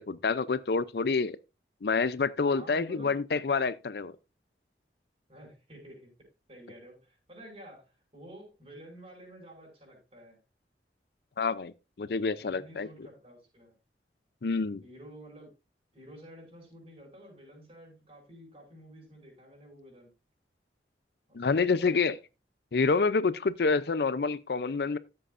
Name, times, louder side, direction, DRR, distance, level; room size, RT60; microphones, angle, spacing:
voice 1, 0.0-1.4 1.8-4.2 11.4-12.9 14.4-14.8 21.3-22.2 22.7-25.0, left 4 dB, 65° left, 0.5 m, -28 dB
voice 2, 2.5-3.2 5.3-6.1 6.5-10.4 12.4-13.8 14.8-15.5 15.9-20.1 21.3-22.2, equal, 35° right, 5.9 m, -50 dB
14.0 x 7.8 x 2.5 m
head